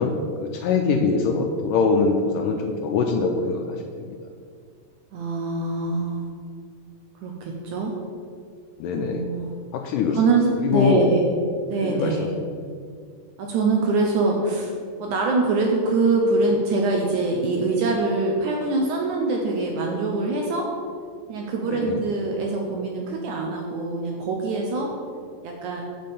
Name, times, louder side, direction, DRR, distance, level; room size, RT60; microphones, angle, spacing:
voice 1, 0.0-4.2 8.8-9.3 9.7-10.2 10.6-11.1 11.8-12.2 21.7-22.0, left 5 dB, 80° left, 3 dB, 2.0 m, -23 dB
voice 2, 5.1-6.3 7.2-8.0 9.0-9.5 10.1-11.2 11.7-12.3 13.4-14.7 15.0-20.7 21.3-24.9 25.4-25.8, right 3 dB, 75° right, 0 dB, 1.9 m, -24 dB
7.5 x 6.6 x 5.3 m, 2.1 s
omnidirectional pair, 4.2 m